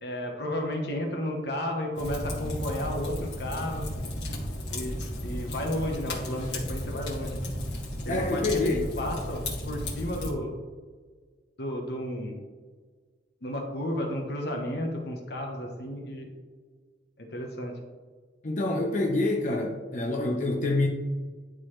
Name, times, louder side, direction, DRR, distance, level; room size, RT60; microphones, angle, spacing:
voice 1, 0.0-3.9 4.7-5.0 5.2-7.4 8.0-8.7 9.0-10.5 11.6-12.4 13.4-16.3 17.2-17.7, left 1 dB, 65° left, 2 dB, 1.2 m, -32 dB
Fire, 1.9-10.3, left 1 dB, 85° left, 1.9 m, -34 dB
voice 2, 8.1-8.8 18.4-20.9, left 2 dB, 45° left, 0 dB, 0.8 m, -26 dB
11.0 x 4.0 x 3.2 m, 1.5 s
head